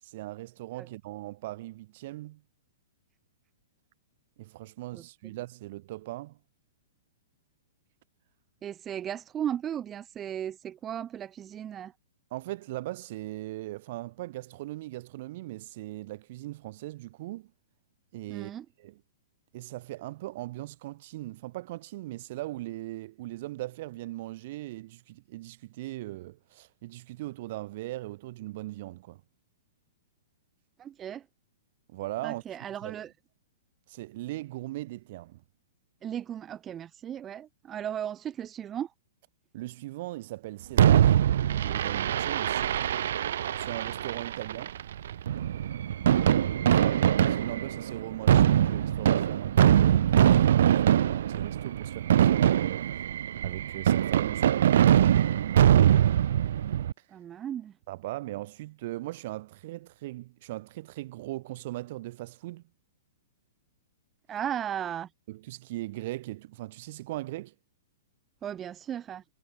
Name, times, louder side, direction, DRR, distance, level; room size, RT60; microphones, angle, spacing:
voice 1, 0.0-2.4 4.4-6.4 12.3-17.5 18.1-18.5 18.8-19.0 19.5-29.2 31.9-32.4 32.8-33.0 33.9-35.4 39.5-41.2 41.5-42.8 43.5-44.8 46.7-53.1 53.4-55.1 57.0-57.1 57.9-62.6 65.3-67.5, right 17 dB, 45° right, 7.5 m, -39 dB
voice 2, 8.6-11.9 18.3-18.7 30.8-31.2 32.2-33.1 36.0-38.9 46.6-47.0 57.1-57.7 64.3-65.1 68.4-69.2, right 10 dB, 15° right, 1.8 m, -36 dB
Fireworks, 40.8-56.9, right 10 dB, 65° right, 0.5 m, -23 dB
hypercardioid pair, 165°, 0 cm